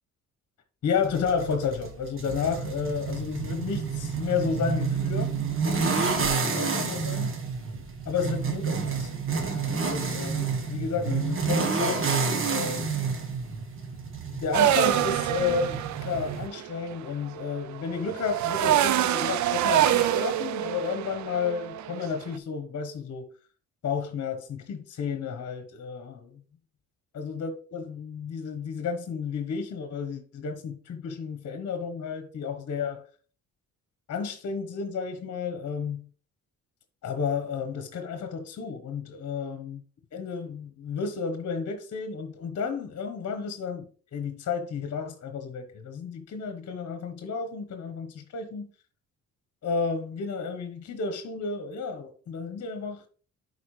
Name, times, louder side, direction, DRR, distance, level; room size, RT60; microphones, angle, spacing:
voice 1, 0.8-7.4 8.1-9.1 9.4-12.9 14.3-23.3 23.8-26.4 27.1-33.0 34.1-36.1 37.0-39.8 40.1-43.9 44.1-48.7 49.6-53.1, left 5 dB, 55° left, 1.2 m, -32 dB
sound 1, 1.0-16.5, right 5 dB, 45° right, 1.4 m, -29 dB
sound 2, 14.5-22.3, right 12 dB, 70° right, 0.6 m, -26 dB
11.0 x 4.4 x 3.3 m
cardioid pair, 90°, 30 cm